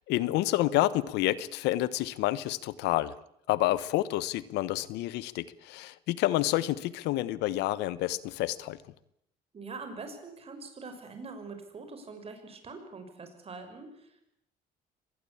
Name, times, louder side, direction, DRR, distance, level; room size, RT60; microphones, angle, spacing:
voice 1, 0.0-3.1 3.5-8.8, left 16 dB, 90° left, 18 dB, 1.1 m, -29 dB
voice 2, 9.5-14.2, right 4 dB, 35° right, 6 dB, 6.2 m, -44 dB
24.5 x 19.5 x 8.7 m, 0.77 s
cardioid pair, 110°, 17 cm